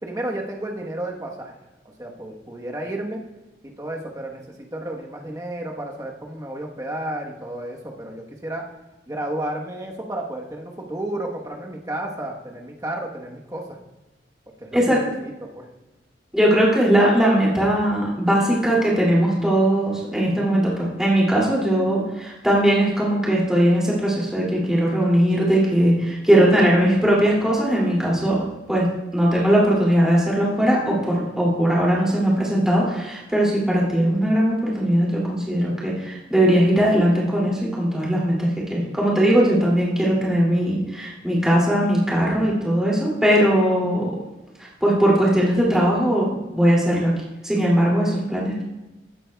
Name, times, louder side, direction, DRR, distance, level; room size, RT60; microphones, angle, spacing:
voice 1, 0.0-1.6 2.0-3.2 3.8-4.4 4.7-8.7 9.1-13.8 14.6-15.6, right 1 dB, 20° right, 0 dB, 1.1 m, -32 dB
voice 2, 16.3-28.4 28.7-44.1 44.6-46.3 46.5-47.1 47.4-48.7, right 1 dB, 5° right, -6 dB, 2.5 m, -19 dB
16.0 x 8.5 x 2.3 m, 1.0 s
head